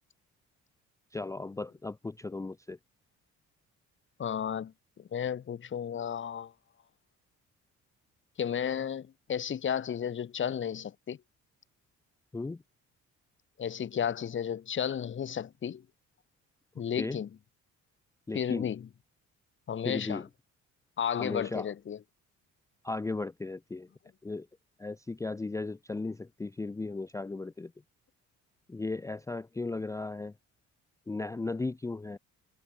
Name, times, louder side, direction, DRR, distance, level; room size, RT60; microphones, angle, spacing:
voice 1, 1.1-2.8 12.3-12.6 17.0-17.2 18.3-18.7 19.8-20.2 21.2-21.7 22.8-23.9 24.2-24.5 24.8-27.7 28.7-30.3 31.1-32.2, left 3 dB, 10° left, 0.4 m, -36 dB
voice 2, 4.2-6.5 8.4-11.2 13.6-15.8 16.8-17.3 18.3-18.9 19.7-20.3 21.0-22.0, left 8 dB, 40° left, 1.0 m, -33 dB
cardioid pair, 90°, 30 cm